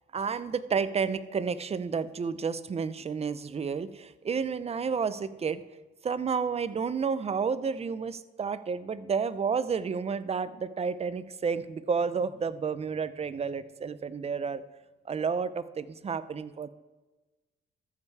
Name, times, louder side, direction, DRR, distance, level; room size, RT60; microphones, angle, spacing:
voice 1, 0.1-5.6 6.0-14.6 15.1-16.7, right 5 dB, 30° right, 14 dB, 0.6 m, -31 dB
14.0 x 5.5 x 4.8 m, 1.2 s
cardioid pair, 90°, 20 cm